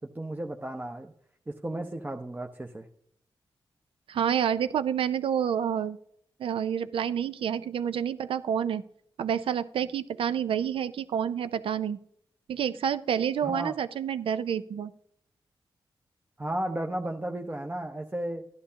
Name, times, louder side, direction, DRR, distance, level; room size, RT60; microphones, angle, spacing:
voice 1, 0.1-1.1 1.5-2.9 13.4-13.8 16.4-18.5, right 1 dB, 20° right, 2 dB, 0.8 m, -34 dB
voice 2, 4.1-6.0 6.4-8.8 9.2-12.0 12.5-14.9, right 8 dB, 85° right, 13 dB, 0.5 m, -28 dB
13.5 x 11.0 x 2.8 m, 0.68 s
cardioid pair, 60°, 9 cm